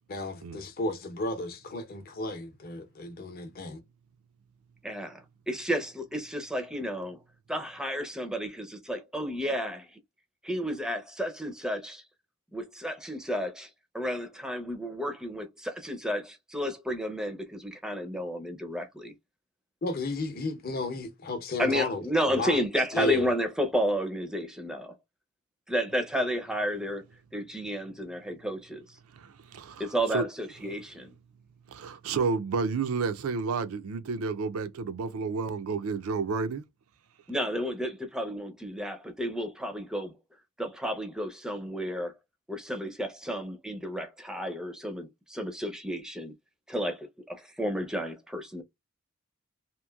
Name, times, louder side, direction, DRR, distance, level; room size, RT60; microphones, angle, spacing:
voice 1, 0.1-3.8 19.8-22.6 22.9-23.3, left 2 dB, 45° left, 0.7 m, -33 dB
voice 2, 4.8-7.2 7.5-9.9 10.4-12.0 12.5-13.7 13.9-19.1 21.6-25.0 25.7-27.0 27.3-29.0 29.8-31.1 37.3-40.1 40.6-42.1 42.5-46.3 46.7-48.6, equal, 5° right, 0.5 m, -32 dB
voice 3, 29.1-30.3 31.7-36.6, right 4 dB, 80° right, 0.4 m, -31 dB
2.9 x 2.5 x 2.3 m
head